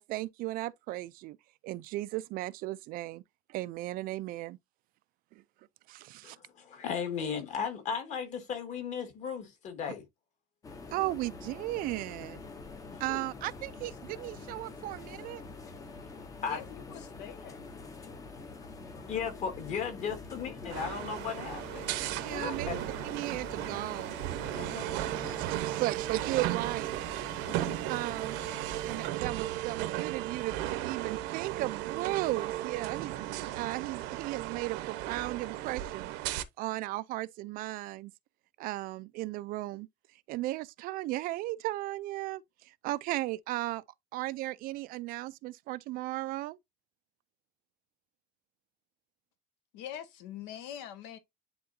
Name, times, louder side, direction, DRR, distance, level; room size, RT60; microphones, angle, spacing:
voice 1, 0.0-1.4 1.6-3.2 3.5-4.6 5.3-5.4 5.9-6.4 10.9-12.4 13.0-15.4 22.0-22.7 23.1-24.2 25.2-26.9 27.6-28.4 28.8-33.1 33.5-36.1 36.6-38.1 38.6-43.8 44.1-46.6, right 17 dB, 55° right, 0.4 m, -36 dB
voice 2, 6.2-10.0 12.9-13.2 16.4-16.6 19.0-21.9 22.3-22.9 24.5-25.0 27.5-27.8, left 6 dB, 40° left, 1.9 m, -36 dB
sound 1, 10.6-29.1, left 3 dB, 20° left, 0.7 m, -46 dB
voice 3, 16.4-17.7 49.7-51.2, left 10 dB, 75° left, 1.3 m, -44 dB
sound 2, 20.7-36.4, right 14 dB, 80° right, 0.9 m, -35 dB
10.0 x 3.8 x 2.6 m
cardioid pair, 175°, 18 cm